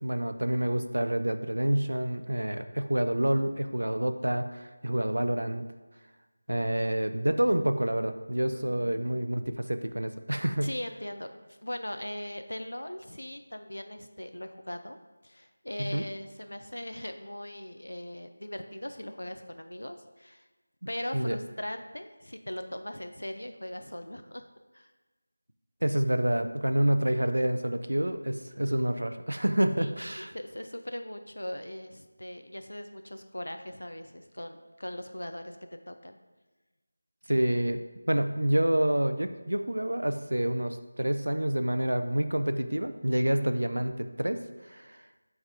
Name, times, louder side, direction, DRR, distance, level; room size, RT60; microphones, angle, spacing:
voice 1, 0.0-5.7 6.5-10.7 15.8-16.1 21.1-21.4 25.8-30.3 37.3-37.8 38.1-44.4 44.7-44.9, right 1 dB, 80° right, 8 dB, 0.5 m, -28 dB
voice 2, 8.5-9.2 10.6-15.0 15.2-20.4 20.9-24.5 24.7-24.9 29.8-35.6 35.9-36.2, left 1 dB, 80° left, 7 dB, 0.5 m, -40 dB
5.4 x 3.5 x 4.9 m, 1.2 s
figure-of-eight pair, 165°, 0 cm